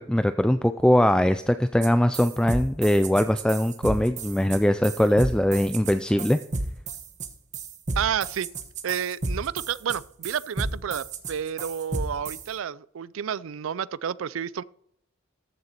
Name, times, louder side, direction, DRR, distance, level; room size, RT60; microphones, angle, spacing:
voice 1, 0.0-6.4, left 1 dB, 5° left, 0.3 m, -21 dB
sound 1, 1.8-12.5, right 2 dB, 35° right, 1.2 m, -32 dB
voice 2, 8.0-8.5 8.8-14.6, right 8 dB, 75° right, 0.4 m, -30 dB
14.0 x 6.6 x 4.4 m
head